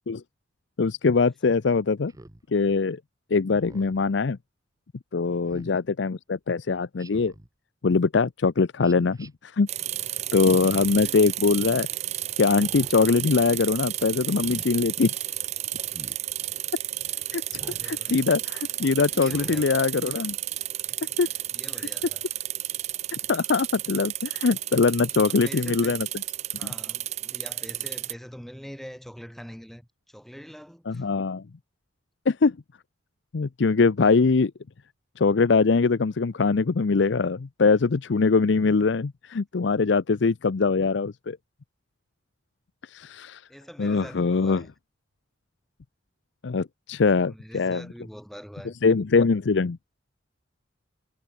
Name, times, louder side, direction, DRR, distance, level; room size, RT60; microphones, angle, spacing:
voice 1, 0.8-2.1 2.5-3.0 3.3-4.4 5.1-7.3 7.8-9.7 10.3-11.9 12.4-15.1 17.3-17.4 17.8-20.4 21.2-21.3 23.1-26.1 26.6-26.7 30.9-31.4 32.3-32.6 33.3-34.5 35.2-41.4 42.9-43.4 43.8-44.6 46.4-47.9 48.8-49.8, left 4 dB, 65° left, 0.6 m, -22 dB
Speech synthesizer, 2.1-2.4 3.5-4.0 5.5-5.8 7.0-7.5 8.8-9.3 10.6-11.1 12.4-12.9 14.3-14.7 15.9-16.2 17.5-17.9 19.2-19.7, right 1 dB, 20° right, 1.2 m, -45 dB
voice 2, 5.2-5.6 10.4-10.5 11.0-11.2 16.5-16.7 17.5-18.3 19.1-19.8 20.9-22.2 22.6-22.9 25.1-26.0 26.5-31.1 43.5-44.7 47.1-48.8, equal, ahead, 2.7 m, -44 dB
sound 1, 9.7-28.1, right 14 dB, 35° right, 0.4 m, -32 dB
head